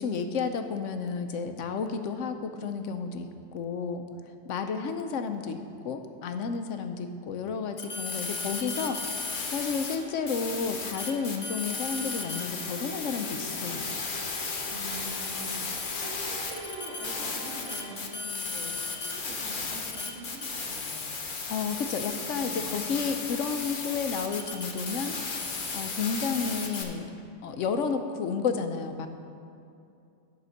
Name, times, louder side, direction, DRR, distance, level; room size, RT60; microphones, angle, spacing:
voice 1, 0.0-4.0 4.5-13.9 21.5-27.1 27.4-29.1, left 5 dB, 80° left, 7 dB, 1.0 m, -32 dB
sound 1, 7.8-10.0 10.3-26.8, left 4 dB, 45° left, 1.0 m, -34 dB
sound 2, 8.8-18.0, right 1 dB, 25° right, 1.4 m, -46 dB
voice 2, 14.7-21.1 22.3-22.7, right 1 dB, 75° right, -3 dB, 2.1 m, -44 dB
11.0 x 5.1 x 6.4 m, 2.6 s
omnidirectional pair, 1.3 m